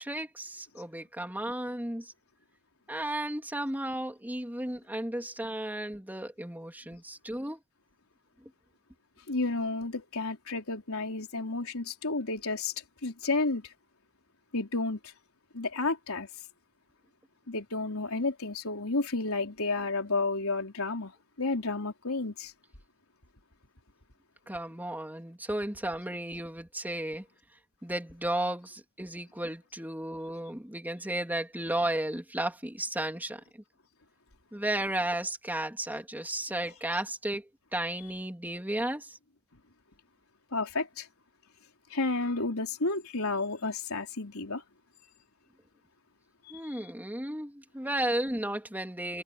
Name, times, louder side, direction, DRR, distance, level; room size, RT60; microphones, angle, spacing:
voice 1, 0.0-2.1 2.9-7.6 24.5-27.2 27.8-33.6 34.5-39.2 46.5-49.2, right 1 dB, 10° right, 3.1 m, -34 dB
voice 2, 9.3-12.7 13.0-13.7 14.5-15.0 15.5-16.3 17.5-21.1 21.4-22.5 40.5-41.1 41.9-44.6, left 3 dB, 85° left, 3.8 m, -31 dB
head